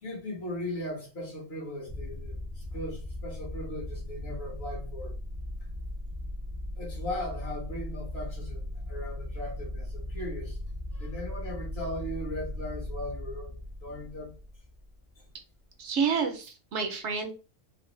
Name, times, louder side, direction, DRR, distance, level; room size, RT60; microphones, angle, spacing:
voice 1, 0.0-5.2 6.8-10.6 10.9-14.3 15.1-15.2, left 1 dB, 55° left, 1.6 m, -38 dB
sound 1, 1.9-15.2, left 1 dB, 10° right, 0.6 m, -38 dB
voice 2, 15.8-17.3, right 6 dB, 65° right, 0.9 m, -29 dB
3.8 x 2.1 x 3.0 m
omnidirectional pair, 1.3 m